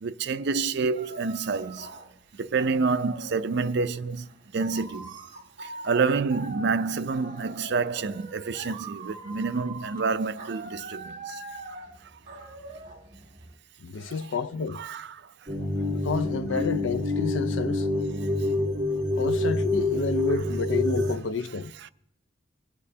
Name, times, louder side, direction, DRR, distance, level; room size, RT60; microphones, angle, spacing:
voice 1, 0.0-1.9 2.4-4.3 4.5-5.1 5.6-11.4 14.7-15.2, right 4 dB, 60° right, 0.5 m, -28 dB
sound 1, 1.0-3.4 4.1-13.6, right 2 dB, 45° right, 2.0 m, -42 dB
voice 2, 13.8-14.8 15.9-17.9 19.2-21.7, left 4 dB, 80° left, 0.5 m, -30 dB
sound 2, 15.5-21.1, left 2 dB, 20° right, 1.6 m, -27 dB
26.0 x 8.7 x 2.8 m
head